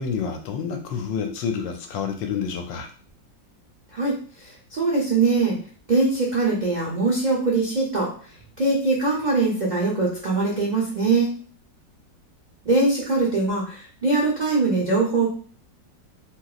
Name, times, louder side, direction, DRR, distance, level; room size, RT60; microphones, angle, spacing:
voice 1, 0.0-2.9, left 6 dB, 85° left, 4 dB, 1.3 m, -28 dB
voice 2, 4.8-5.6 5.9-8.1 8.6-11.3 12.6-15.3, right 3 dB, 85° right, -5 dB, 0.3 m, -22 dB
3.2 x 2.9 x 2.4 m, 0.41 s
omnidirectional pair, 2.0 m